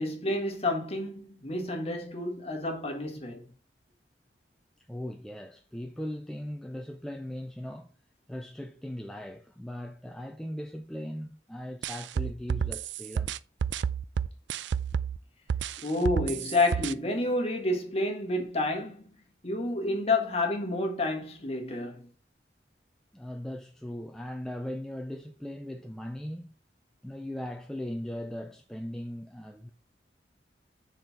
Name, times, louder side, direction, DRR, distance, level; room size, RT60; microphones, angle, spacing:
voice 1, 0.0-3.4 15.8-19.0 19.4-22.0, left 2 dB, 35° left, 1.5 m, -29 dB
voice 2, 4.9-7.9 8.3-13.3 23.1-26.5 27.0-29.7, left 1 dB, 5° left, 0.4 m, -39 dB
sound 1, 11.8-15.2 15.5-16.9, right 7 dB, 85° right, 0.4 m, -30 dB
6.5 x 4.3 x 5.9 m
head